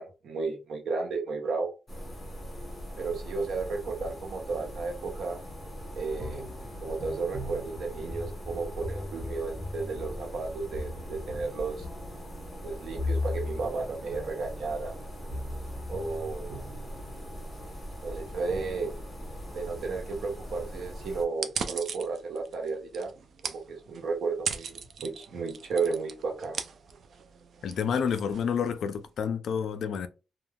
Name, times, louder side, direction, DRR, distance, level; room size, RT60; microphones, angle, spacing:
voice 1, 0.0-1.7 3.0-5.4 5.9-6.5 6.8-11.9 12.6-15.0 15.9-16.7 18.0-18.9 19.5-23.1 23.4-26.6, right 4 dB, 70° right, 0.8 m, -33 dB
sound 1, 1.9-21.2, equal, 15° left, 1.1 m, -41 dB
sound 2, 6.1-17.6 18.2-20.6, left 2 dB, ahead, 0.6 m, -39 dB
sound 3, 21.3-29.1, right 6 dB, 55° right, 0.3 m, -39 dB
voice 2, 27.6-30.1, left 7 dB, 65° left, 0.3 m, -29 dB
2.3 x 2.3 x 3.3 m
cardioid pair, 140°, 0 cm